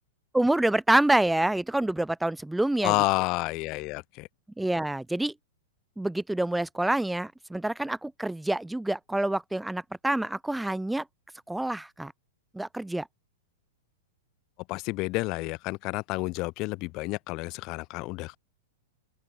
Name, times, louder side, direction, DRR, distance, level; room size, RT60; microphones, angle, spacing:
voice 1, 0.3-3.0 4.6-5.3 6.0-11.0 11.5-12.1 12.5-13.1, right 1 dB, 5° right, 0.8 m, -27 dB
voice 2, 2.8-4.3 14.7-18.4, left 23 dB, 40° left, 1.7 m, -30 dB
open air
figure-of-eight pair, 100°, 0 cm